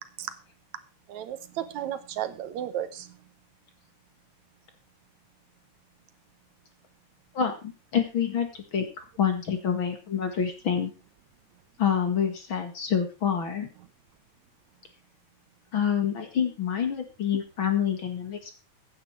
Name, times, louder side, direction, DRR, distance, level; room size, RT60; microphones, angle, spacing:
voice 1, 1.1-3.2, right 11 dB, 70° right, 12 dB, 2.3 m, -34 dB
voice 2, 7.3-8.9 9.2-10.9 11.8-13.7 15.7-18.5, left 8 dB, 45° left, 7 dB, 2.4 m, -27 dB
15.5 x 9.8 x 4.6 m, 0.30 s
omnidirectional pair, 3.4 m